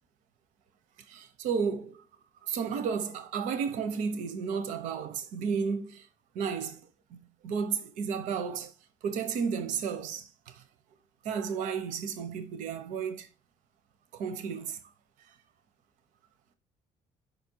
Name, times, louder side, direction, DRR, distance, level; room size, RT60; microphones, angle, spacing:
voice 1, 1.1-2.0 2.5-6.0 6.3-6.8 7.4-8.7 9.0-10.2 11.2-13.3 14.1-14.8, right 6 dB, 85° right, 0.9 m, -32 dB
5.5 x 4.3 x 4.6 m
cardioid pair, 145°, 13 cm